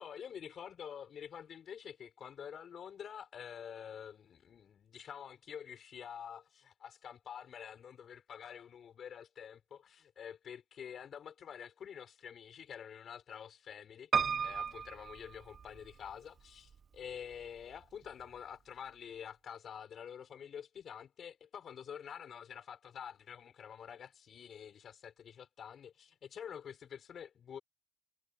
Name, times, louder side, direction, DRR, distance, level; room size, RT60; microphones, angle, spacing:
voice 1, 0.0-27.6, left 8 dB, 60° left, 5.6 m, -48 dB
Piano, 14.1-16.1 16.7-17.4 17.8-17.9 18.1-18.2, right 6 dB, 45° right, 0.5 m, -35 dB
cardioid pair, 90°, 0 cm